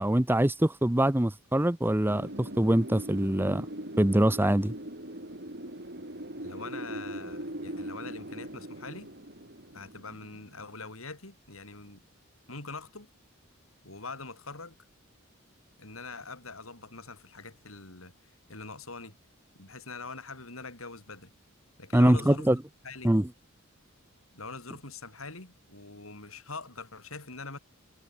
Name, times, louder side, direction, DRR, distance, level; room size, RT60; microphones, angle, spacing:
voice 1, 0.0-3.7 4.0-4.7 21.9-22.6 23.0-23.3, right 1 dB, 10° right, 0.8 m, -24 dB
Wind, 2.1-10.8, right 1 dB, 50° right, 6.9 m, -41 dB
voice 2, 6.4-9.1 9.7-12.0 12.5-13.1 13.8-14.8 15.8-18.1 18.5-19.2 19.5-21.3 21.8-22.6 22.8-23.1 24.3-27.6, left 3 dB, 90° left, 6.3 m, -43 dB
head